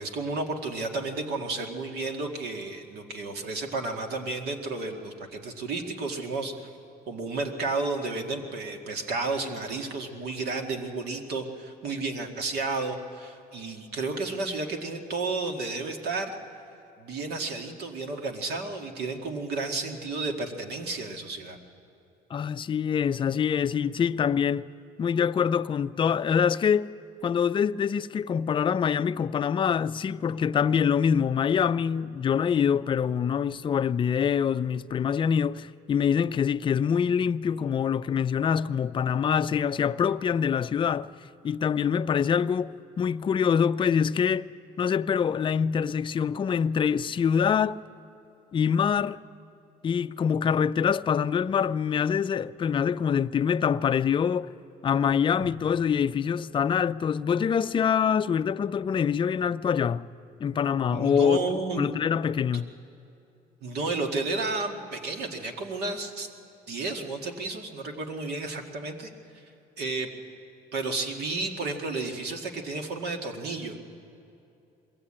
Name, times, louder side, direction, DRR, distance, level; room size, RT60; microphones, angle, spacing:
voice 1, 0.0-6.5 7.1-16.4 17.0-21.6 55.4-55.5 60.9-61.9 63.6-66.3 66.7-69.4 69.8-70.1 70.7-73.8, right 3 dB, 75° right, 2.0 m, -32 dB
voice 2, 22.3-24.7 25.0-26.9 27.2-41.1 41.4-44.5 44.8-47.8 48.5-49.2 49.8-54.5 54.8-60.1 60.4-61.4 61.8-62.7, left 7 dB, 30° left, 0.4 m, -25 dB
21.5 x 16.0 x 8.8 m
cardioid pair, 110°, 17 cm